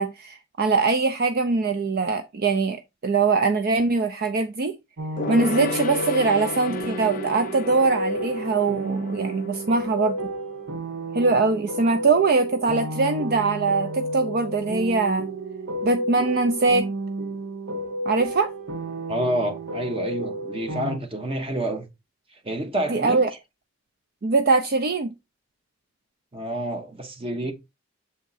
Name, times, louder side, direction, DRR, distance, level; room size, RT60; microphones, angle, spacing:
voice 1, 0.0-4.8 5.3-10.2 11.1-15.3 15.8-16.9 18.1-18.5 22.9-23.3 24.2-25.1, right 4 dB, 50° right, 0.4 m, -22 dB
sound 1, 5.0-21.0, right 1 dB, 75° right, 1.2 m, -31 dB
Gong, 5.2-11.1 11.3-11.4, left 4 dB, 45° left, 0.4 m, -34 dB
voice 2, 19.1-21.9 22.4-23.2 26.3-27.5, right 1 dB, 30° right, 1.0 m, -28 dB
7.1 x 3.6 x 4.0 m
head